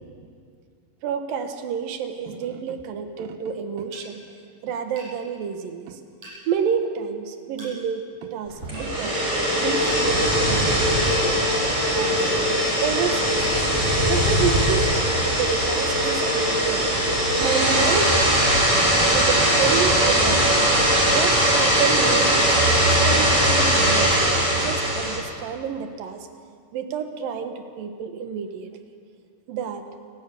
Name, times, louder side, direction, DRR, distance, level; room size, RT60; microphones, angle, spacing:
voice 1, 1.0-4.2 4.6-6.0 6.5-9.2 9.6-11.4 11.9-13.7 14.1-16.9 17.4-18.2 19.0-20.6 21.1-22.6 22.9-24.2 24.5-26.3 26.7-28.7 29.5-29.8, right 7 dB, 85° right, 7 dB, 3.0 m, -29 dB
sound 1, 3.9-4.1 5.0-5.1 6.2-6.4 7.6-7.7 8.7-8.9 9.9-10.0 11.0-11.2 12.2-12.4 13.4-13.6, right 1 dB, 50° right, 9.1 m, -39 dB
sound 2, 8.6-25.2, equal, 20° right, 6.1 m, -20 dB
28.5 x 12.0 x 8.4 m, 2.2 s
omnidirectional pair, 3.9 m